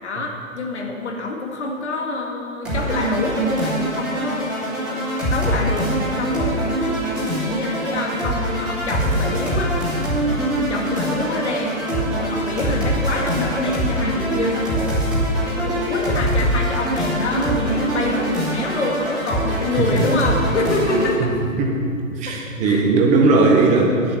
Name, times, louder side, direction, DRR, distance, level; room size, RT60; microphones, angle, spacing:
voice 1, 0.0-6.7 7.4-9.8 10.6-15.0 15.5-21.4 22.3-22.4 22.6-22.8, left 3 dB, 55° left, 1 dB, 2.1 m, -26 dB
sound 1, 2.6-21.1, right 1 dB, ahead, 2.8 m, -23 dB
voice 2, 22.1-24.2, right 3 dB, 20° right, 1 dB, 1.4 m, -17 dB
11.0 x 7.7 x 7.1 m, 2.4 s
figure-of-eight pair, 125°, 41 cm